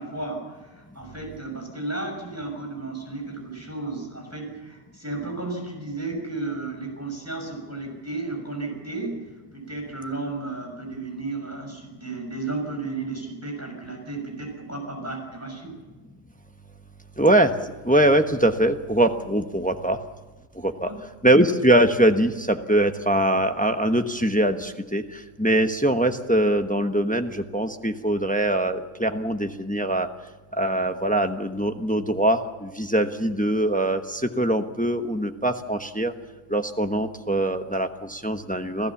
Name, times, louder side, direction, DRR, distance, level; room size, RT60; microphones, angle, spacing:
voice 1, 0.0-15.7 20.9-21.0, right 3 dB, 10° right, 1 dB, 6.1 m, -33 dB
voice 2, 17.2-17.5 17.8-20.0 20.6-20.9 21.2-30.1 30.6-36.1 36.5-38.9, right 1 dB, 5° left, 7 dB, 0.7 m, -22 dB
27.5 x 15.5 x 7.2 m, 1.2 s
omnidirectional pair, 1.8 m